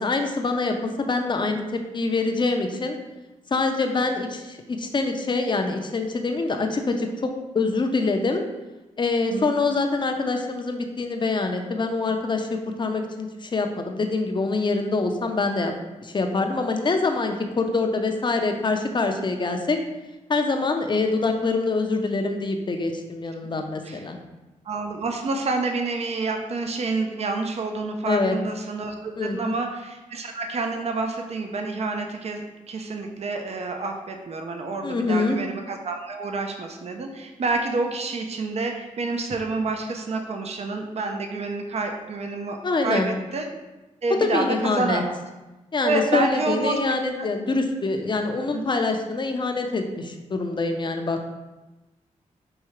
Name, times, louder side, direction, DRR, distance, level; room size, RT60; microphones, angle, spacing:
voice 1, 0.0-3.0 3.5-8.4 9.0-15.7 16.0-19.8 20.3-24.2 28.0-28.4 29.2-29.5 34.8-35.4 42.6-43.1 44.1-45.0 45.7-51.3, left 3 dB, 35° left, 5 dB, 0.5 m, -25 dB
voice 2, 24.7-43.5 44.0-45.2 45.8-46.8 47.2-47.3 48.5-48.7, right 3 dB, 50° right, 4 dB, 0.5 m, -28 dB
4.7 x 2.7 x 3.1 m, 1.1 s
cardioid pair, 60°, 14 cm